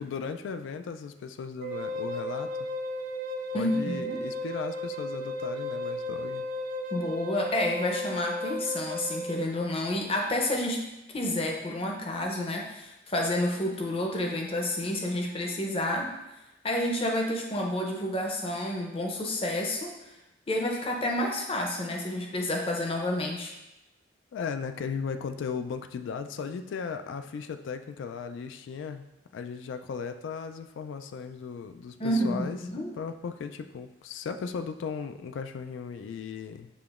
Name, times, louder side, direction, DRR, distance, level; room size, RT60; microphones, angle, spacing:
voice 1, 0.0-2.5 3.5-6.5 24.3-29.0 29.3-32.6 32.9-36.7, left 6 dB, 85° left, 8 dB, 0.3 m, -36 dB
Wind instrument woodwind instrument, 1.6-9.5, left 1 dB, 50° right, 0.3 m, -34 dB
voice 2, 3.5-4.2 6.9-10.8 11.1-16.1 16.6-19.9 20.5-23.5 32.0-32.9, left 1 dB, 30° left, 1 dB, 0.6 m, -29 dB
6.9 x 2.9 x 2.4 m, 0.94 s
head